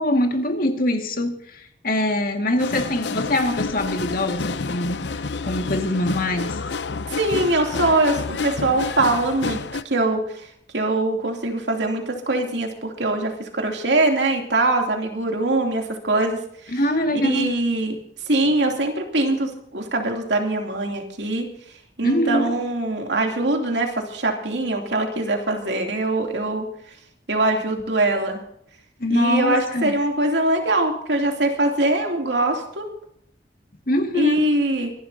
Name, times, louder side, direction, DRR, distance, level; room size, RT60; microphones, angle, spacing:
voice 1, 0.0-5.0 5.4-6.6 16.7-17.5 22.0-22.6 29.0-29.9 33.9-34.4, left 1 dB, 55° left, 2.1 m, -23 dB
sound 1, 2.6-9.8, left 4 dB, 75° left, 0.7 m, -29 dB
voice 2, 7.2-10.5 10.7-16.4 17.1-18.0 18.3-21.5 22.0-26.6 27.3-28.4 29.1-32.9 34.1-34.9, right 2 dB, 80° right, 3.0 m, -22 dB
24.5 x 12.0 x 2.8 m
head